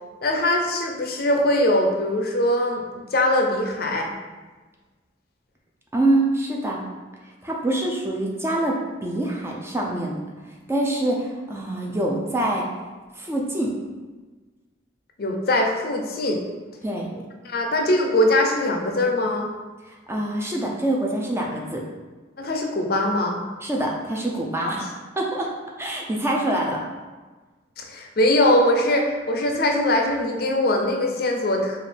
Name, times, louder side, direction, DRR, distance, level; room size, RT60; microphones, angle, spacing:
voice 1, 0.2-2.8 3.1-4.1 15.2-16.4 17.4-19.5 22.4-23.4 24.7-24.9 27.8-31.8, left 1 dB, 55° left, 2 dB, 0.5 m, -22 dB
voice 2, 5.9-6.8 7.4-10.2 10.7-12.7 13.1-13.7 16.8-17.1 19.9-21.8 23.6-24.8 25.2-25.5 25.8-26.8, right 1 dB, 15° right, -1 dB, 0.4 m, -25 dB
5.0 x 2.5 x 3.3 m, 1.3 s
head